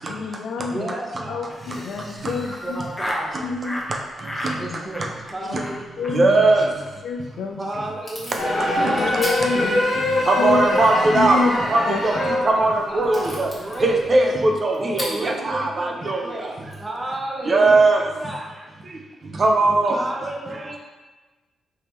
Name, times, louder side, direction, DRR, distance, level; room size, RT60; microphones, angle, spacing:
voice 1, 0.1-0.9 1.3-2.8 3.4-3.8 4.7-4.8 5.5-5.6 6.0-6.5 7.0-7.7 9.0-9.8 10.4-10.6 11.1-11.5 11.8-12.0, left 4 dB, 75° left, 4 dB, 0.3 m, -27 dB
voice 2, 0.7-1.6 2.6-3.4 4.6-6.1 7.6-9.9 10.7-13.9 14.8-18.4 19.9-20.8, right 1 dB, 20° right, -2 dB, 0.8 m, -32 dB
Laughter, 1.5-3.3 3.6-3.9 4.2-4.6 4.9-5.3 5.6-5.8 6.0-6.1 6.4-6.5 6.8-6.9 7.2-7.5, left 1 dB, 15° left, 0.7 m, -33 dB
voice 3, 6.1-6.6 10.3-11.4 11.7-12.1 12.6-13.5 13.8-16.2 17.5-18.0 19.4-19.9, right 2 dB, 50° right, 2 dB, 0.5 m, -18 dB
Packing tape duct tape / Tearing, 7.1-17.9, left 1 dB, 35° left, 1.4 m, -41 dB
sound 1, 8.4-14.1, left 1 dB, 60° left, 1.1 m, -25 dB
3.4 x 2.8 x 3.0 m, 1.2 s
supercardioid pair, 55°, 0 cm